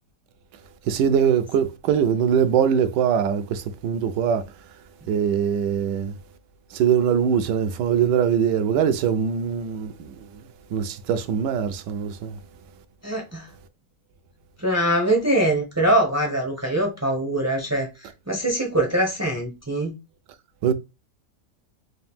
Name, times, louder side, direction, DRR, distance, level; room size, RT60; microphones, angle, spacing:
voice 1, 0.9-4.4 5.1-6.1 6.7-10.2 10.7-12.3 20.6-20.7, right 8 dB, 85° right, 1.2 m, -22 dB
voice 2, 13.0-13.5 14.6-20.0, right 1 dB, 25° right, 0.3 m, -23 dB
3.8 x 2.5 x 3.5 m
omnidirectional pair, 1.8 m